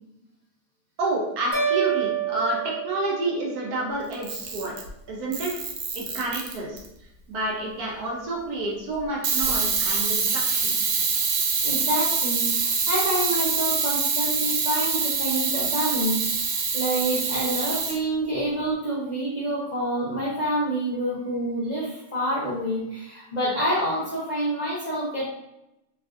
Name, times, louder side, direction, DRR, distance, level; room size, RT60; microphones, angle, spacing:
voice 1, 1.0-4.7 5.1-5.5 5.9-6.8 7.3-10.8, right 2 dB, 70° right, -2 dB, 1.1 m, -29 dB
sound 1, 1.5-3.8, right 8 dB, 10° left, 0.9 m, -28 dB
Camera, 4.1-4.9 5.3-6.9 9.2-18.0, right 5 dB, 90° right, 1.2 m, -25 dB
voice 2, 11.6-25.3, right 1 dB, 45° left, -10 dB, 0.5 m, -27 dB
3.3 x 2.4 x 2.4 m, 0.87 s
omnidirectional pair, 1.8 m